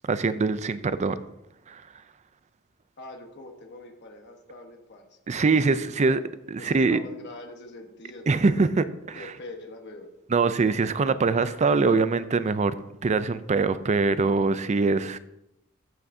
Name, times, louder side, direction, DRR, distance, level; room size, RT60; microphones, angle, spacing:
voice 1, 0.1-1.2 1.7-1.8 5.3-6.2 6.5-7.0 8.3-9.3 10.3-12.7 13.0-15.2, right 4 dB, 35° right, 0.4 m, -23 dB
voice 2, 3.0-5.2 5.4-6.1 6.6-8.6 9.1-10.1 10.8-10.9, left 2 dB, 55° left, 1.2 m, -44 dB
14.5 x 5.9 x 2.7 m
head